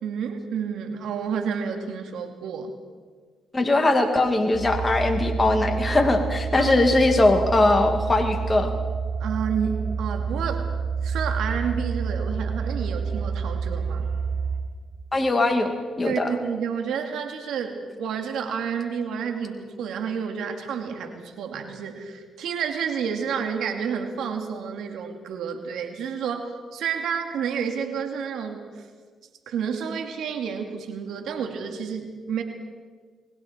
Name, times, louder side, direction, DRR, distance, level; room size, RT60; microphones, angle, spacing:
voice 1, 0.0-2.7 6.6-6.7 9.2-10.6 11.0-14.1 16.0-28.9 29.5-32.4, right 7 dB, 80° right, 4 dB, 2.4 m, -30 dB
voice 2, 3.5-8.7 15.1-15.7 16.0-16.3, left 2 dB, 25° left, 4 dB, 2.3 m, -20 dB
sound 1, 4.5-14.6, right 5 dB, 60° right, 6.7 m, -28 dB
30.0 x 21.0 x 4.5 m, 1.5 s
supercardioid pair, 70°, 0 cm